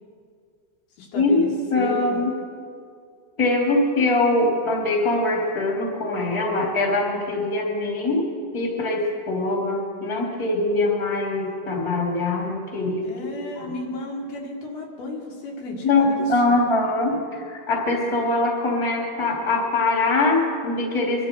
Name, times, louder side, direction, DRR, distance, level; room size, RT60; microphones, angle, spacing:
voice 1, 1.0-1.5 1.7-2.2 13.0-16.2 16.5-16.6, left 3 dB, 70° left, -1 dB, 3.8 m, -32 dB
voice 2, 1.7-2.3 3.4-13.0 13.6-13.7 15.8-21.3, left 2 dB, 10° left, -2 dB, 2.3 m, -23 dB
24.0 x 11.5 x 4.6 m, 2.1 s
omnidirectional pair, 4.6 m